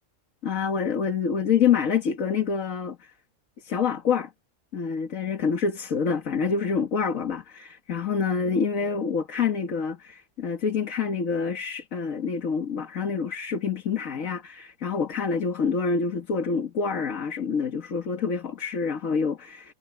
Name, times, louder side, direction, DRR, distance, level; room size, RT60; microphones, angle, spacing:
voice 1, 0.4-3.1 3.6-4.3 4.7-19.7, left 6 dB, 85° left, 2.0 m, -27 dB
omnidirectional pair, 1.4 m